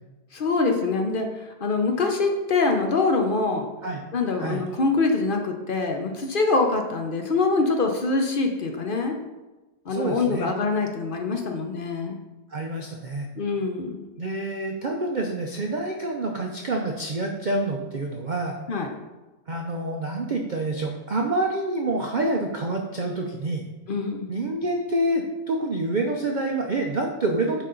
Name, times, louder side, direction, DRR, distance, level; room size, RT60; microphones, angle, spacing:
voice 1, 0.3-3.7 4.1-9.2 9.9-12.2 13.4-14.0 18.7-18.9 23.9-24.4, left 3 dB, 50° left, 4 dB, 0.6 m, -24 dB
voice 2, 9.9-10.5 12.5-13.3 14.2-18.6 19.5-23.7 24.3-27.6, right 2 dB, 55° right, 2 dB, 0.5 m, -27 dB
9.0 x 4.1 x 3.8 m, 1.1 s
omnidirectional pair, 1.6 m